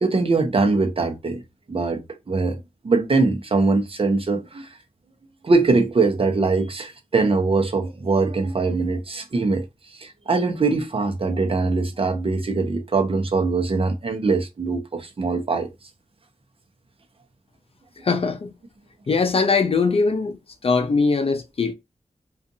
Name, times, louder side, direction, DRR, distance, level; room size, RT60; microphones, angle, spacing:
voice 1, 0.0-1.4 1.7-2.6 2.8-4.7 5.4-9.6 10.0-15.7, right 3 dB, 50° right, 0.8 m, -22 dB
voice 2, 18.0-18.5 19.1-20.4 20.6-21.7, left 4 dB, 50° left, 0.5 m, -21 dB
2.5 x 2.5 x 2.6 m
wide cardioid pair, 65°, 12 cm